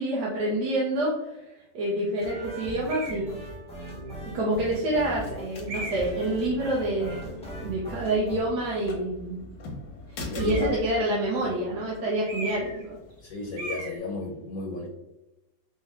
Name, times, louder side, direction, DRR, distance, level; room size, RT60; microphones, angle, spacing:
voice 1, 0.0-1.5 1.7-3.5 4.2-7.2 7.6-9.4 10.1-13.0, right 1 dB, 75° right, -4 dB, 1.3 m, -27 dB
sound 1, 2.2-8.4, right 1 dB, 5° left, 0.4 m, -40 dB
sound 2, 2.9-3.3 4.1-4.2 5.7-6.2 10.3-10.9 12.2-12.8 13.1-13.3 13.6-14.0, right 2 dB, 40° right, 0.9 m, -37 dB
sound 3, 4.8-13.8, left 1 dB, 85° left, 1.5 m, -42 dB
voice 2, 10.3-10.7 11.4-11.6 13.2-14.9, left 2 dB, 70° left, 1 dB, 0.9 m, -33 dB
4.7 x 2.1 x 3.4 m, 0.95 s
omnidirectional pair, 1.8 m